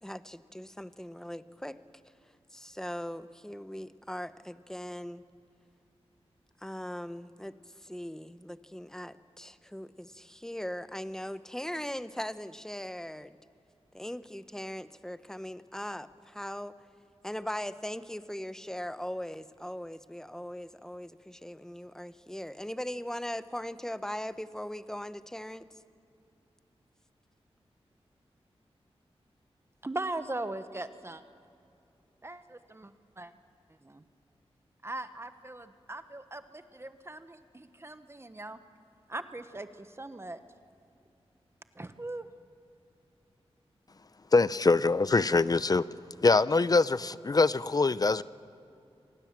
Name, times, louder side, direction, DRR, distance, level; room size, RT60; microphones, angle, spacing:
voice 1, 0.0-1.8 2.5-5.2 6.6-13.4 13.9-16.8 17.2-25.7, equal, 5° left, 13 dB, 0.9 m, -39 dB
voice 2, 29.8-31.2 32.2-33.3 33.8-34.0 34.8-38.6 39.1-40.4 41.7-42.3, right 2 dB, 25° right, 10 dB, 1.1 m, -40 dB
voice 3, 44.3-45.9 46.2-48.2, left 3 dB, 35° left, 17 dB, 0.6 m, -24 dB
26.5 x 20.0 x 7.5 m, 2.6 s
wide cardioid pair, 70°, 11 cm